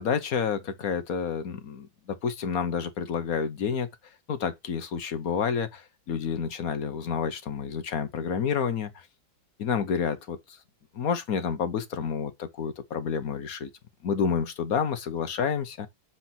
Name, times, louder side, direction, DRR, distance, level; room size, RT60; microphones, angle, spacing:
voice 1, 0.0-3.9 4.3-9.1 9.6-10.6 10.9-13.7 14.0-15.9, left 6 dB, 60° left, 1.3 m, -29 dB
7.7 x 4.0 x 5.8 m
omnidirectional pair, 1.9 m